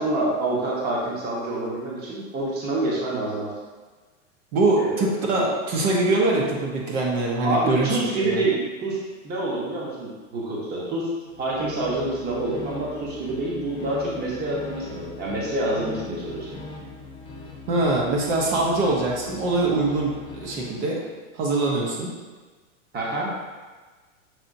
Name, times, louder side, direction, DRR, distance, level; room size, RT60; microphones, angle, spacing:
voice 1, 0.0-3.5 4.8-5.1 7.4-11.1 11.4-16.6 22.9-23.3, right 2 dB, 25° right, -4 dB, 1.0 m, -27 dB
voice 2, 4.5-7.9 8.2-8.4 17.7-21.0 21.3-22.1, right 2 dB, 65° right, -2 dB, 1.1 m, -23 dB
sound 1, 11.3-20.8, left 2 dB, 10° left, 0.9 m, -40 dB
6.1 x 2.9 x 2.6 m, 1.3 s
supercardioid pair, 130°, 38 cm